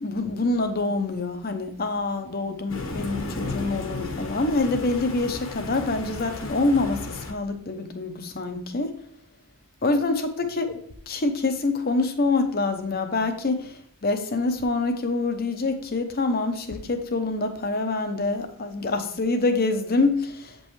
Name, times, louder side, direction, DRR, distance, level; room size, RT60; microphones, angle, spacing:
voice 1, 0.0-9.0 9.8-10.8 11.1-20.6, left 3 dB, 45° left, 0.8 m, -26 dB
Thunder, 2.7-7.3, left 2 dB, 60° left, 1.2 m, -34 dB
8.2 x 5.4 x 3.2 m
head